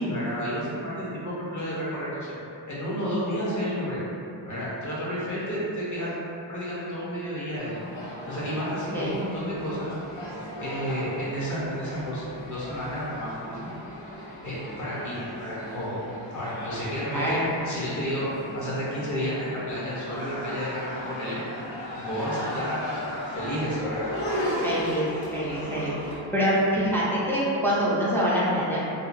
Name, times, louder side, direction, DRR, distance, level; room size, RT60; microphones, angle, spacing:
voice 1, 0.0-2.3 2.6-4.0 4.5-6.1 6.5-7.7 8.2-9.9 10.6-13.7 14.4-16.0 16.3-18.3 18.5-21.4 22.0-24.1, equal, 40° left, -8 dB, 0.8 m, -31 dB
sound 1, 7.6-26.2, equal, 80° left, 0.8 m, -36 dB
voice 2, 17.1-17.5 24.6-25.9 26.3-28.8, equal, 5° left, -9 dB, 0.3 m, -25 dB
2.8 x 2.3 x 2.5 m, 2.7 s
wide cardioid pair, 145°, 47 cm